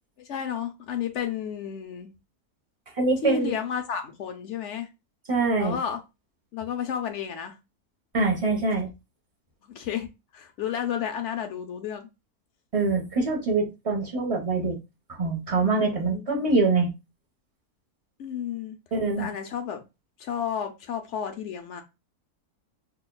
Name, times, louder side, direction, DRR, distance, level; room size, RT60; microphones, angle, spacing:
voice 1, 0.2-2.1 3.2-4.9 5.6-6.0 6.5-7.6 9.7-10.1 10.3-12.1 15.6-16.3 18.2-18.8 19.2-19.8 20.2-21.8, left 8 dB, 65° left, 0.8 m, -32 dB
voice 2, 3.0-3.5 5.3-5.8 8.1-8.9 12.7-14.8 15.1-16.9 18.9-19.3, right 3 dB, 30° right, 0.7 m, -24 dB
5.6 x 2.2 x 2.2 m
omnidirectional pair, 1.6 m